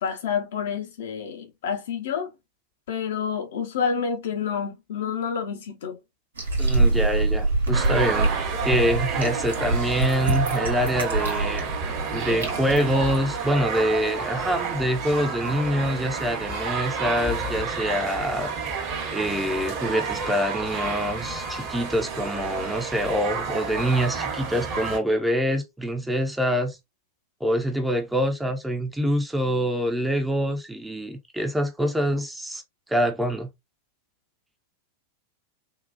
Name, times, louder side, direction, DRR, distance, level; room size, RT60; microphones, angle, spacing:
voice 1, 0.0-2.3 2.9-6.0, left 6 dB, 55° left, 0.8 m, -28 dB
sound 1, 6.4-13.2, right 2 dB, 75° right, 1.1 m, -25 dB
voice 2, 6.6-8.4 8.6-18.5 19.1-26.8 27.4-32.6 32.9-33.5, equal, 5° right, 0.6 m, -25 dB
sound 2, 7.7-25.0, right 5 dB, 40° right, 1.0 m, -30 dB
3.8 x 2.4 x 2.5 m
figure-of-eight pair, 90°, 0 cm